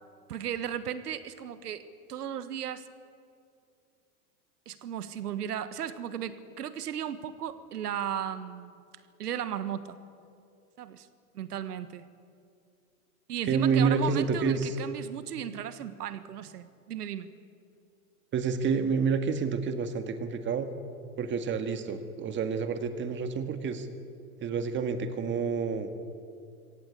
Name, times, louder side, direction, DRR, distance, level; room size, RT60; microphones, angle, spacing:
voice 1, 0.3-1.8 2.1-2.9 4.6-8.8 9.2-10.0 10.8-11.1 11.3-12.1 13.3-17.3, right 9 dB, 85° right, 13 dB, 1.4 m, -35 dB
voice 2, 13.4-14.8 18.3-20.7 21.2-23.9 24.4-25.9, right 5 dB, 25° right, 8 dB, 1.8 m, -28 dB
24.5 x 17.5 x 8.4 m, 2.4 s
hypercardioid pair, 125°, 45 cm